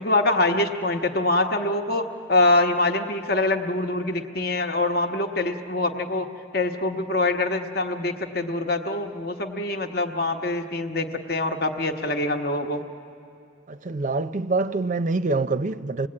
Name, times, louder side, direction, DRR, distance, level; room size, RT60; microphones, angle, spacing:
voice 1, 0.0-6.3 6.5-12.8, left 2 dB, 55° left, 1.2 m, -24 dB
voice 2, 13.7-16.1, right 3 dB, 40° right, 0.5 m, -25 dB
28.0 x 20.0 x 8.7 m
head